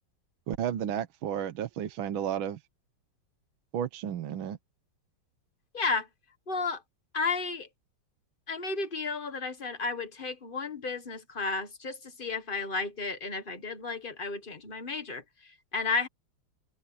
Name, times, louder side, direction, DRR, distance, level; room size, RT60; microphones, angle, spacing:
voice 1, 0.5-2.6 3.7-4.6, right 9 dB, 80° right, 1.8 m, -32 dB
voice 2, 5.7-6.1 6.5-6.8 7.1-7.7 8.5-16.1, left 4 dB, 25° left, 1.6 m, -33 dB
open air
omnidirectional pair, 2.2 m